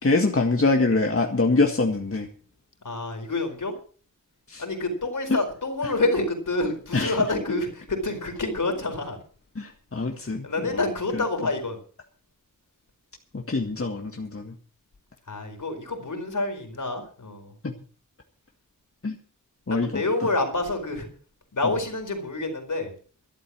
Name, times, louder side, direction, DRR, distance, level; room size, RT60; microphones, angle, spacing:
voice 1, 0.0-2.3 4.5-4.6 5.3-5.4 6.9-7.2 9.6-10.5 13.3-14.5 17.6-17.7 19.0-19.2 19.7-20.0, left 3 dB, 40° left, 3 dB, 1.8 m, -24 dB
voice 2, 2.8-3.7 4.6-9.2 10.4-11.8 15.3-17.5 19.7-21.1 21.5-22.9, left 2 dB, 60° left, 5 dB, 4.4 m, -27 dB
13.0 x 11.5 x 6.2 m, 0.43 s
wide cardioid pair, 60°, 34 cm